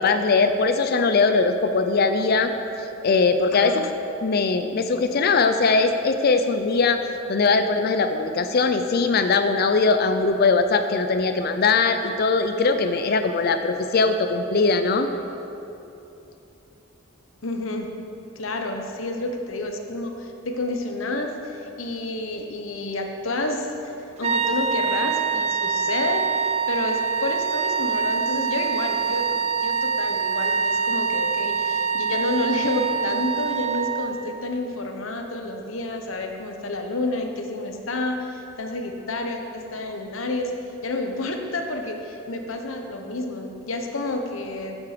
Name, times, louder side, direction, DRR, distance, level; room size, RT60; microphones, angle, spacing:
voice 1, 0.0-2.5 2.8-3.9 4.2-7.0 7.3-15.1, left 4 dB, 50° left, 8 dB, 0.5 m, -21 dB
voice 2, 17.4-17.9 18.4-23.7 24.2-40.5 40.8-44.8, left 2 dB, 90° left, 4 dB, 1.0 m, -29 dB
sound 1, 24.2-34.2, right 6 dB, 35° right, 0.6 m, -25 dB
11.5 x 8.2 x 5.1 m, 2.9 s
head